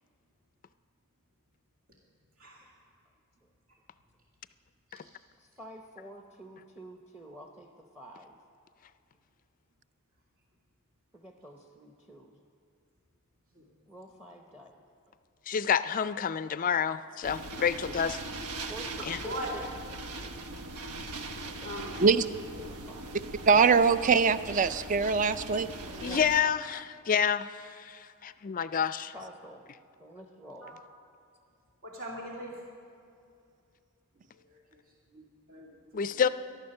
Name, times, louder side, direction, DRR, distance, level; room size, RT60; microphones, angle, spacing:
voice 1, 5.3-8.4 11.1-12.4 13.9-14.8 18.7-19.6 19.9-20.4 21.4-21.7 22.6-23.3 25.8-26.5 29.1-29.6 30.0-30.8, right 1 dB, 10° right, 3 dB, 0.8 m, -49 dB
voice 2, 15.5-18.2 19.1-19.2 26.0-29.1 35.9-36.3, left 7 dB, 40° left, 14 dB, 0.4 m, -28 dB
sound 1, 17.2-26.4, right 2 dB, 85° right, 0.9 m, -40 dB
voice 3, 21.6-21.9 30.6-30.7 31.8-32.6 34.4-34.8 35.1-36.3, equal, 65° right, -3 dB, 2.4 m, -41 dB
voice 4, 23.5-25.7, right 5 dB, 35° right, 14 dB, 0.4 m, -22 dB
14.0 x 11.5 x 6.6 m, 2.5 s
head